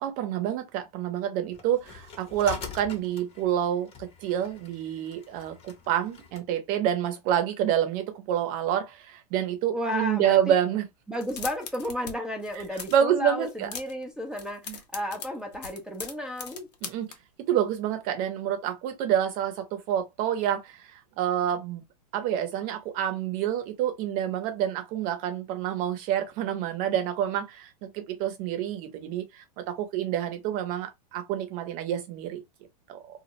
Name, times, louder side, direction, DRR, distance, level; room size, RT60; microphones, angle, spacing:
voice 1, 0.0-10.8 12.9-13.7 14.7-14.8 16.8-17.1 17.5-21.8 22.1-32.4 32.9-33.0, right 10 dB, 45° right, 0.8 m, -28 dB
sound 1, 1.5-6.5, left 6 dB, 30° left, 0.8 m, -44 dB
voice 2, 9.7-10.6 11.1-16.7, left 1 dB, 5° right, 0.5 m, -33 dB
sound 2, 11.1-12.1 12.4-13.0 13.4-14.0 14.3-17.1, left 6 dB, 80° left, 0.7 m, -39 dB
2.4 x 2.1 x 2.8 m
hypercardioid pair, 110°, 20 cm